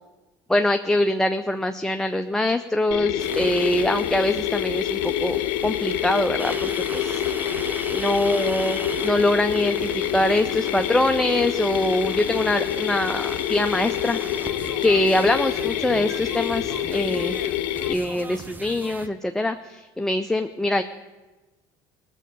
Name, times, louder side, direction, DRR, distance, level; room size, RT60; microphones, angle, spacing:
voice 1, 0.5-7.2 7.9-14.5 14.8-17.4 17.9-20.8, left 1 dB, 5° left, 6 dB, 0.6 m, -24 dB
Mechanisms, 2.9-17.9, left 11 dB, 75° left, 0.7 m, -27 dB
sound 1, 3.2-19.1, right 2 dB, 20° right, 0.9 m, -39 dB
18.5 x 7.5 x 5.4 m, 1.2 s
supercardioid pair, 85°, 10 cm